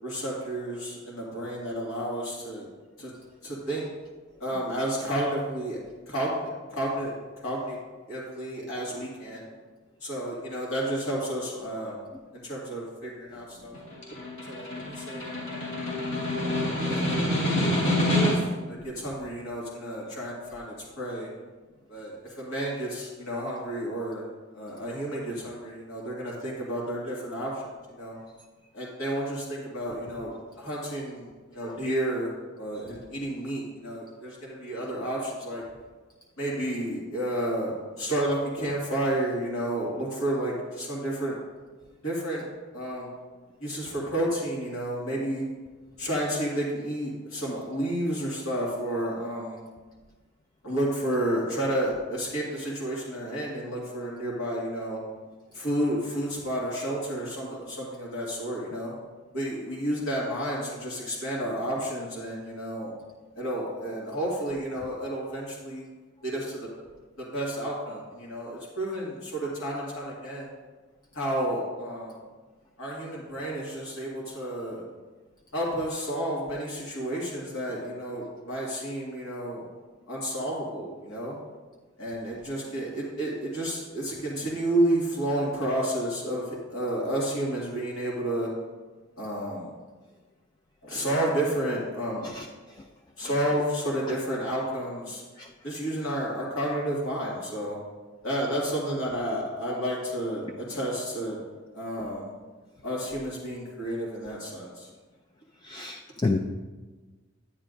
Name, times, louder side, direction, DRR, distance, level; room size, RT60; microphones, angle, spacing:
voice 1, 0.0-2.7 3.0-3.1 3.4-3.8 4.4-5.8 6.1-7.1 7.4-7.8 8.1-9.4 10.0-12.0 12.3-13.8 14.5-15.6 16.9-21.3 21.9-24.2 24.5-28.2 28.7-35.6 36.4-41.4 42.0-42.4 42.7-43.1 43.6-45.4 46.0-49.6 50.6-55.0 55.5-58.9 59.3-62.9 63.4-65.8 66.2-66.7 67.2-70.5 71.1-72.2 72.8-74.8 75.5-79.7 80.1-81.4 82.0-88.5 89.2-89.7 90.8-92.3 93.2-95.2 95.6-97.8 98.2-101.4 101.7-102.3 102.8-104.9, right 1 dB, 85° left, -5 dB, 2.0 m, -31 dB
Snare drum, 13.7-18.7, left 1 dB, 60° left, 2.5 m, -27 dB
voice 2, 105.7-106.4, left 3 dB, 20° left, 3 dB, 0.3 m, -27 dB
10.0 x 9.4 x 2.6 m, 1.3 s
head